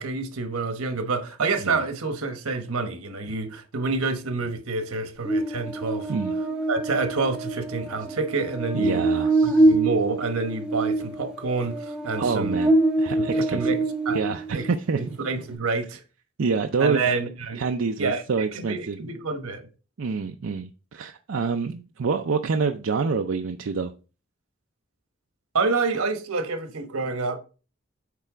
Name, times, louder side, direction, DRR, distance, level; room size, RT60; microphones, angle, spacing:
voice 1, 0.0-6.1 6.7-9.1 9.4-12.6 13.1-14.2 14.5-14.7 15.0-16.0 16.8-17.6 18.0-19.7 25.5-27.4, right 3 dB, 90° right, 1.2 m, -28 dB
Buzz, 5.2-14.7, right 2 dB, 5° right, 1.0 m, -25 dB
voice 2, 8.7-9.7 12.2-12.7 13.0-13.8 14.1-15.2 16.4-17.0 17.6-19.0 20.0-23.9, right 5 dB, 65° right, 0.5 m, -27 dB
8.4 x 3.3 x 4.8 m
head